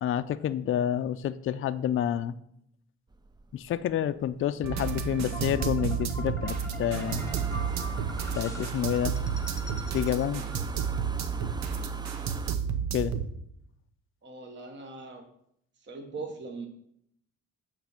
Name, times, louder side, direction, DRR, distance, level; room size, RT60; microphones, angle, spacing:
voice 1, 0.0-2.4 3.5-7.2 8.3-9.2 9.9-10.4 12.9-13.1, left 10 dB, 45° left, 12 dB, 0.4 m, -29 dB
sound 1, 3.1-12.6, right 2 dB, 15° right, 0.4 m, -44 dB
sound 2, 4.6-13.3, right 7 dB, 65° right, 0.8 m, -31 dB
sound 3, 5.3-11.4, left 1 dB, 10° left, 1.0 m, -44 dB
voice 2, 14.2-15.3 15.8-16.7, right 3 dB, 40° right, 3 dB, 1.0 m, -40 dB
8.6 x 3.3 x 5.7 m, 0.73 s
cardioid pair, 90°, 30 cm